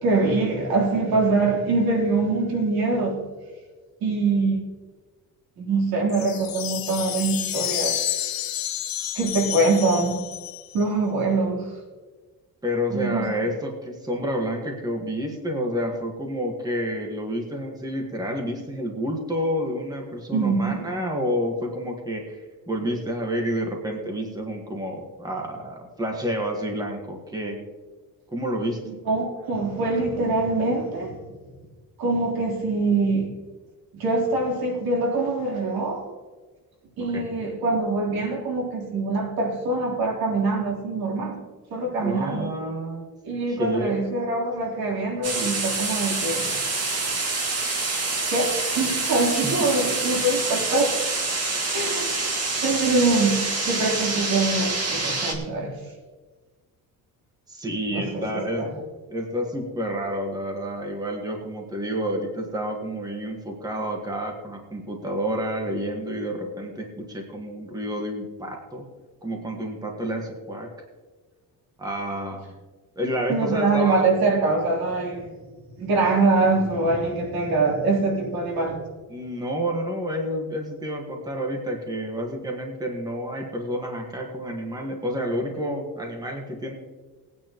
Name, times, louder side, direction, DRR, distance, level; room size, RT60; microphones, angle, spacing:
voice 1, 0.0-3.2 4.0-4.6 5.6-8.0 9.2-10.2 10.7-11.7 12.9-13.3 20.3-20.8 28.8-31.4 32.0-33.3 33.9-36.1 37.0-41.4 41.7-42.5 43.2-46.5 48.3-51.0 51.7-52.1 52.6-55.8 57.9-58.7 73.3-75.3 75.8-78.8, right 3 dB, 80° right, -2 dB, 3.6 m, -24 dB
sound 1, 6.1-10.8, left 11 dB, 70° left, 1.1 m, -30 dB
voice 2, 12.6-22.4 22.7-27.6 28.3-29.0 37.1-37.3 42.0-43.1 43.5-44.0 46.1-46.2 49.4-49.7 57.5-68.8 69.2-70.7 71.8-72.5 72.9-74.1 79.1-86.7, equal, 10° right, 1 dB, 1.5 m, -29 dB
sound 2, 45.2-55.3, right 3 dB, 45° right, 2.0 m, -26 dB
19.0 x 9.3 x 3.0 m, 1.4 s
cardioid pair, 160°, 36 cm